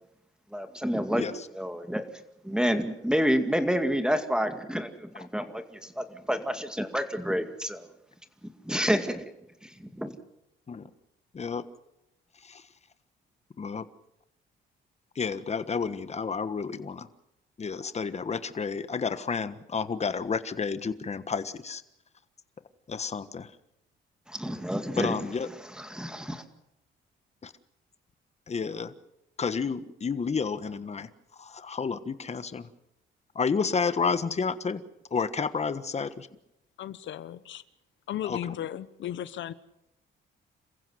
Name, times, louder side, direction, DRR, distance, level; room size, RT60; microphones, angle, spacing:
voice 1, 0.5-1.2 1.5-2.0 2.4-7.9 8.4-9.3 9.6-10.1 24.3-26.4, equal, 5° right, 8 dB, 2.2 m, -29 dB
voice 2, 15.2-17.1 17.6-21.8 22.9-23.5 25.0-25.5 27.4-27.5 28.5-28.9 29.4-31.1 31.4-32.7 33.3-34.8 35.1-36.3 38.2-38.4, left 5 dB, 35° left, 13 dB, 1.4 m, -30 dB
voice 3, 36.8-37.6 38.1-39.5, left 11 dB, 70° left, 16 dB, 1.0 m, -35 dB
27.5 x 15.5 x 7.9 m, 0.86 s
cardioid pair, 90°, 20 cm